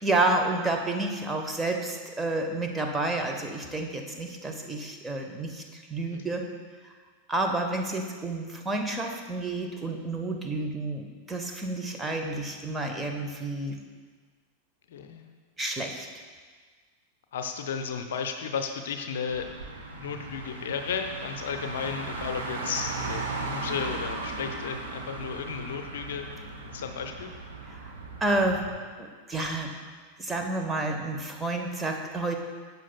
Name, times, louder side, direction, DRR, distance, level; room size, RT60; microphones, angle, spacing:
voice 1, 0.0-6.4 6.8-6.9 7.3-13.8 15.6-16.1 27.7-27.9 28.2-28.7 29.0-29.7 30.2-32.4, right 2 dB, 10° right, 3 dB, 0.9 m, -30 dB
voice 2, 14.9-15.3 17.3-19.5 19.9-26.3 26.7-27.3, left 6 dB, 60° left, 6 dB, 0.6 m, -34 dB
Car, 19.2-28.8, right 3 dB, 65° right, 1.3 m, -37 dB
12.0 x 8.1 x 2.2 m, 1.5 s
figure-of-eight pair, 90°, 0 cm